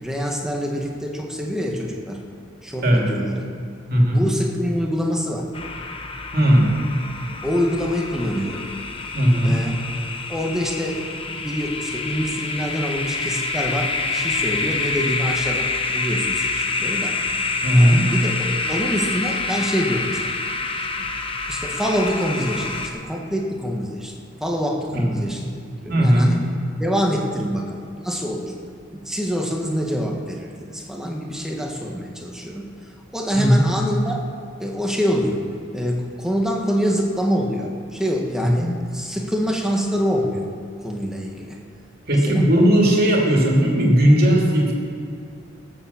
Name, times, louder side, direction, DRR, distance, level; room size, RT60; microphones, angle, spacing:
voice 1, 0.0-2.2 2.6-3.4 4.1-5.5 7.4-8.6 9.4-9.8 10.3-17.2 17.7-20.2 21.0-21.1 21.5-24.1 24.4-26.4 26.8-28.5 28.9-32.7 33.1-34.2 34.6-35.4 35.7-40.5 40.8-41.6 42.1-42.4, equal, 5° right, -1 dB, 1.6 m, -25 dB
voice 2, 3.9-4.2 6.3-6.7 9.1-9.6 17.6-18.1 24.9-25.1 25.9-26.4 33.3-33.6 38.6-38.7 42.1-44.7, equal, 50° right, -1 dB, 2.8 m, -16 dB
sound 1, 5.5-22.9, left 3 dB, 25° left, 0.9 m, -27 dB
18.0 x 7.4 x 7.3 m, 2.4 s
head